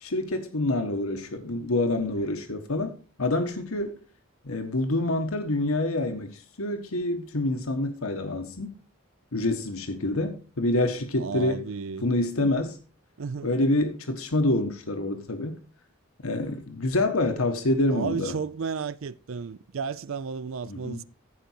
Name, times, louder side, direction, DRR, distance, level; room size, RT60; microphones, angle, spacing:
voice 1, 0.0-4.0 4.4-8.7 9.3-11.6 12.0-12.8 13.4-15.6 16.2-18.3 20.7-21.0, left 2 dB, 85° left, 1.3 m, -27 dB
voice 2, 11.2-12.1 12.4-12.5 13.2-13.5 17.9-21.0, right 5 dB, 70° right, 0.5 m, -33 dB
15.0 x 5.2 x 4.5 m
head